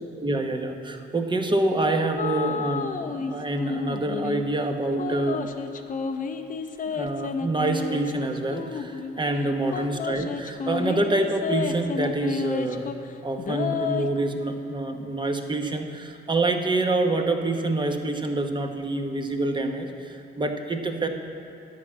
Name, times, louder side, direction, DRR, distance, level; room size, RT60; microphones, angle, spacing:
voice 1, 0.0-5.4 6.9-12.9 13.2-21.1, right 2 dB, 25° right, 4 dB, 1.1 m, -26 dB
sound 1, 2.2-3.3 3.6-4.4 5.0-9.2 9.7-13.1 13.4-14.2, left 5 dB, 40° left, 0.7 m, -30 dB
10.5 x 5.9 x 8.6 m, 2.6 s
cardioid pair, 90°, 20 cm